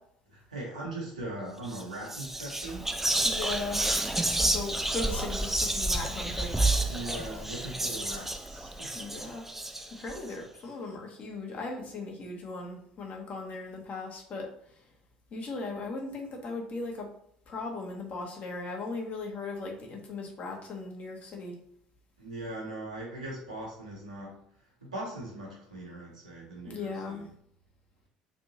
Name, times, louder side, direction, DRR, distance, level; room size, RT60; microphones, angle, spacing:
voice 1, 0.3-2.9 6.9-9.0 22.2-27.3, right 1 dB, 85° right, -4 dB, 1.1 m, -40 dB
Whispering, 1.6-1.8 2.1-10.2, right 2 dB, 5° right, 0.4 m, -30 dB
voice 2, 3.2-3.8 4.4-6.7 8.9-9.5 10.0-14.8 15.3-17.1 17.5-21.5 26.6-27.2, left 3 dB, 40° left, 0 dB, 1.0 m, -38 dB
3.3 x 2.7 x 2.9 m, 0.67 s
figure-of-eight pair, 60°, 4 cm